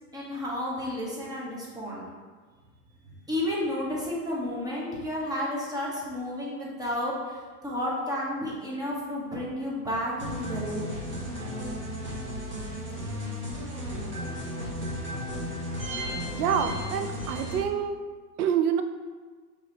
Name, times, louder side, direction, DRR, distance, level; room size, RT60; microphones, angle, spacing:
voice 1, 0.1-2.1 3.1-11.0, left 1 dB, 10° right, -5 dB, 0.9 m, -32 dB
sound 1, 10.2-17.6, equal, 25° right, 1.1 m, -34 dB
voice 2, 16.3-18.0 18.4-18.8, right 8 dB, 65° right, 8 dB, 0.5 m, -27 dB
4.7 x 3.3 x 2.7 m, 1.4 s
hypercardioid pair, 120°, 49 cm